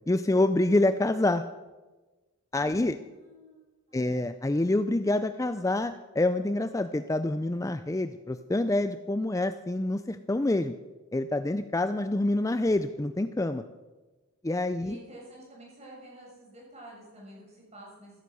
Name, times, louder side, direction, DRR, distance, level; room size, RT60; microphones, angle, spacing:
voice 1, 0.1-1.4 2.5-3.0 3.9-10.7 11.1-13.6 14.4-15.0, left 2 dB, 15° left, 10 dB, 0.4 m, -27 dB
voice 2, 2.6-4.2 14.8-18.2, right 1 dB, 30° right, -3 dB, 7.0 m, -50 dB
15.5 x 13.5 x 6.2 m, 1.2 s
head